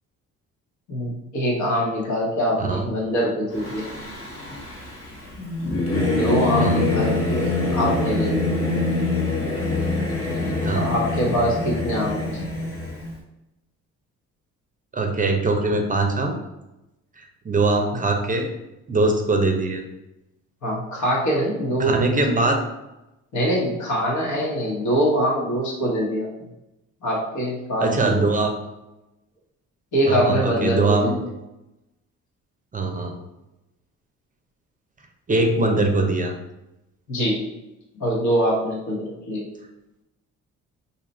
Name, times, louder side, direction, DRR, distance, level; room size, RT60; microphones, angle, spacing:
voice 1, 0.9-3.9 6.0-8.5 10.7-12.3 17.9-18.0 20.6-22.0 23.3-26.3 27.0-28.3 29.9-31.2 37.1-37.5 37.9-39.5, equal, 75° left, -3 dB, 1.2 m, -24 dB
Singing / Musical instrument, 3.5-13.1, left 2 dB, 50° left, 1.0 m, -25 dB
voice 2, 14.9-16.3 17.2-18.5 18.9-19.8 21.8-22.6 27.8-28.5 30.1-31.2 32.7-33.1 35.3-36.4, right 2 dB, 25° right, 3 dB, 0.5 m, -22 dB
2.8 x 2.4 x 4.2 m, 0.95 s
cardioid pair, 90°, 30 cm